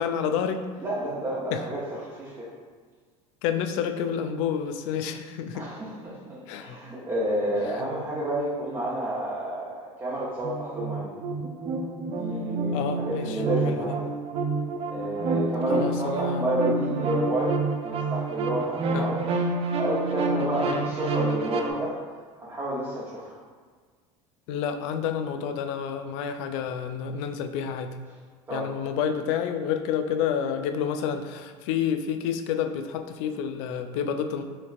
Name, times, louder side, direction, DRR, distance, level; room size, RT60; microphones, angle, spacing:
voice 1, 0.0-0.6 1.5-1.7 3.4-5.7 6.5-6.8 7.7-7.9 12.7-13.4 13.6-13.9 15.7-16.4 18.9-19.1 20.7-20.8 24.5-27.9 28.5-34.4, left 8 dB, 70° left, 7 dB, 0.4 m, -29 dB
voice 2, 0.8-2.5 5.5-11.1 12.1-14.1 14.9-19.2 19.8-22.0 22.4-23.4 28.5-28.7, right 1 dB, 20° right, -8 dB, 0.9 m, -30 dB
sound 1, 10.4-21.7, right 3 dB, 35° right, 0.4 m, -28 dB
4.3 x 2.9 x 2.5 m, 1.5 s
hypercardioid pair, 90°, 17 cm